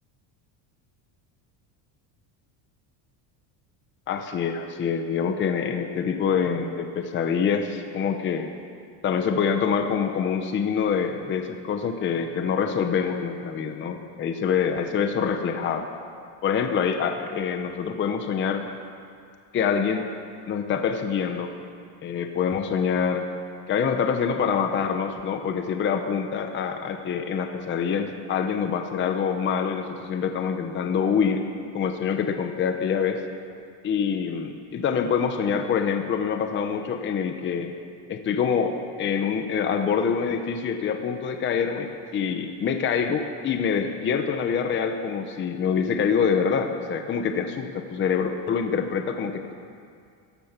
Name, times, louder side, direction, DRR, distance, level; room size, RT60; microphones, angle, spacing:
voice 1, 4.1-8.5 9.0-15.9 16.4-18.6 19.5-20.1 20.5-21.5 22.0-23.3 23.7-31.4 31.7-33.2 33.8-37.7 38.1-49.5, left 6 dB, 25° left, 6 dB, 0.7 m, -25 dB
16.5 x 14.0 x 5.8 m, 2.3 s
cardioid pair, 165°, 49 cm